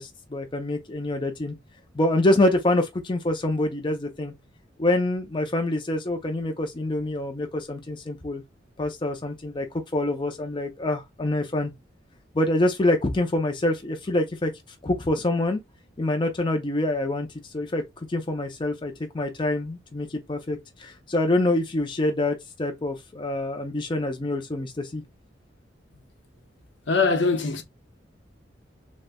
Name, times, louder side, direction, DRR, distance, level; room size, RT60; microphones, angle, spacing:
voice 1, 0.0-1.5 1.9-4.3 4.8-8.4 8.8-11.7 12.3-14.5 14.8-15.6 16.0-17.8 18.1-25.0, left 1 dB, 25° left, 0.5 m, -26 dB
voice 2, 26.9-27.6, left 4 dB, 75° left, 0.9 m, -22 dB
6.2 x 2.1 x 2.2 m
head